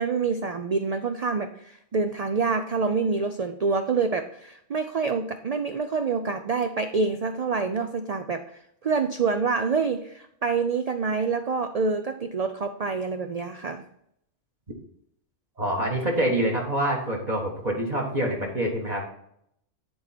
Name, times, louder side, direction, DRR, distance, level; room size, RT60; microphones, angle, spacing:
voice 1, 0.0-13.8, right 4 dB, 55° right, 7 dB, 0.4 m, -27 dB
voice 2, 15.6-19.0, right 1 dB, 35° right, 0 dB, 1.5 m, -26 dB
10.5 x 4.2 x 4.2 m, 0.73 s
omnidirectional pair, 1.2 m